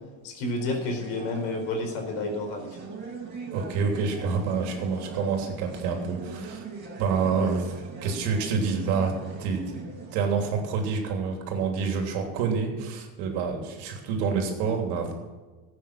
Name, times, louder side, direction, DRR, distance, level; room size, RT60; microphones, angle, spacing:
voice 1, 0.2-2.8, left 2 dB, 75° left, 3 dB, 4.5 m, -30 dB
sound 1, 0.6-10.2, right 4 dB, 25° right, 5.1 m, -41 dB
voice 2, 3.5-6.6 7.0-9.8 10.1-15.1, right 5 dB, 75° right, 2 dB, 3.3 m, -27 dB
14.5 x 9.1 x 6.1 m, 1.3 s
supercardioid pair, 100°, 40 cm